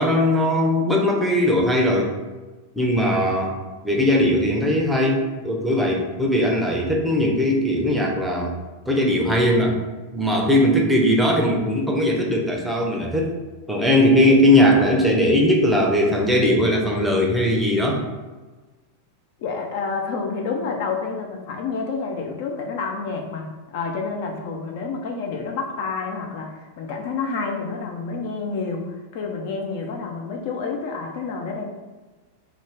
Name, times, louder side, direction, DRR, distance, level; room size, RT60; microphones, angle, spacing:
voice 1, 0.0-2.1 2.8-3.5 3.8-8.6 8.9-9.8 10.1-13.3 13.7-18.0, left 1 dB, 5° right, -1 dB, 0.5 m, -19 dB
voice 2, 19.4-31.7, left 4 dB, 50° left, 2 dB, 0.3 m, -29 dB
2.4 x 2.1 x 3.3 m, 1.2 s
figure-of-eight pair, 90°, 0 cm